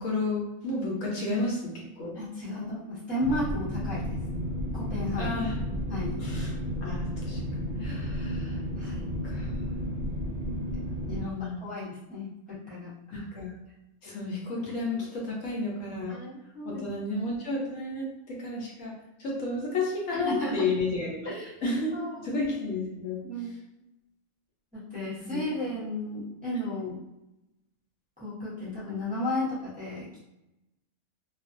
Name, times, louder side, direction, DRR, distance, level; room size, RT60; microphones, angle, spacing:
voice 1, 0.0-2.2 5.2-5.6 6.2-6.5 6.8-7.4 7.8-8.6 8.8-8.9 9.2-9.5 11.2-11.6 13.3-13.5 14.0-16.2 16.7-21.3 21.6-23.2 25.2-25.4 26.8-26.9, left 2 dB, 70° left, -3 dB, 1.0 m, -32 dB
voice 2, 2.1-4.2 4.7-5.4 5.9-6.2 8.8-9.1 11.1-11.3 11.6-13.2 16.1-17.1 20.1-20.7 21.2-21.6 21.9-22.2 23.2-23.6 24.7-27.0 28.2-30.2, left 1 dB, 10° right, -10 dB, 0.7 m, -34 dB
sound 1, 3.2-11.2, equal, 70° right, 0.4 m, -32 dB
2.4 x 2.2 x 2.5 m, 0.93 s
omnidirectional pair, 1.5 m